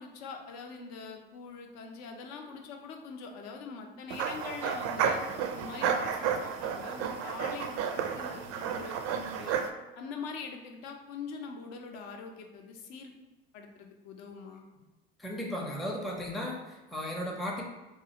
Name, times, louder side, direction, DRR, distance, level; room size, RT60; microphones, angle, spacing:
voice 1, 0.0-5.2 5.5-9.6 10.0-13.1 13.5-14.6, left 5 dB, 55° left, 3 dB, 0.6 m, -43 dB
sound 1, 4.1-9.7, right 7 dB, 50° right, 0.4 m, -32 dB
voice 2, 15.2-17.6, left 1 dB, ahead, -2 dB, 0.5 m, -35 dB
3.0 x 2.4 x 2.8 m, 1.1 s
hypercardioid pair, 80°, 32 cm